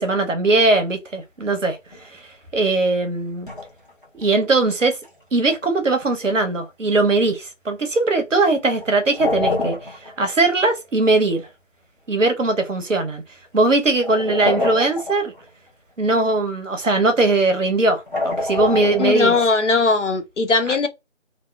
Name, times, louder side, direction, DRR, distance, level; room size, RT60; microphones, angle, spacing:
voice 1, 0.0-1.8 2.0-2.2 2.5-3.5 4.1-5.0 5.3-9.8 10.0-11.5 12.1-13.2 13.5-15.3 16.0-19.3 20.7-20.8, right 2 dB, 75° right, 0.8 m, -20 dB
sound 1, 1.9-2.1 3.5-4.2 4.9-5.1 8.8-10.4 10.7-10.8 11.4-11.5 14.0-15.5 17.1-17.3 18.1-19.6, left 2 dB, 40° left, 0.8 m, -26 dB
voice 2, 19.0-20.9, left 4 dB, 70° left, 0.6 m, -19 dB
2.6 x 2.1 x 2.3 m
figure-of-eight pair, 175°, 38 cm